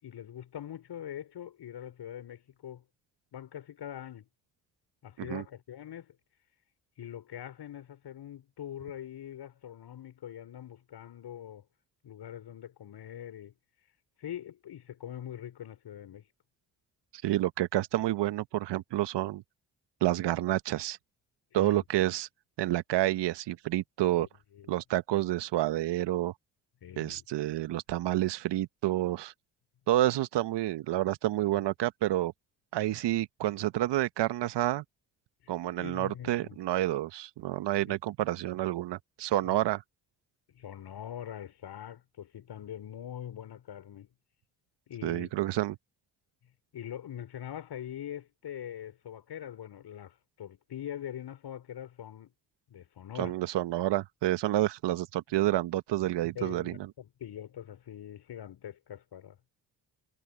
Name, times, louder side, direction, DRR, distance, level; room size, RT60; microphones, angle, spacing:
voice 1, 0.0-2.8 3.3-4.3 5.0-6.2 7.0-11.6 12.0-13.5 14.2-16.3 21.5-21.8 24.1-24.3 24.5-24.8 26.8-27.2 35.4-35.5 35.8-36.6 37.8-38.0 39.4-39.6 40.5-44.1 44.9-45.3 46.7-52.3 52.7-53.4 56.4-59.4, left 10 dB, 55° left, 5.5 m, -43 dB
voice 2, 17.2-19.4 20.0-21.0 21.5-22.3 22.6-24.3 24.7-26.3 27.0-29.3 29.9-32.3 32.7-34.8 35.5-39.8 45.0-45.8 53.2-56.8, right 14 dB, 60° right, 1.5 m, -29 dB
hypercardioid pair, 45°, 47 cm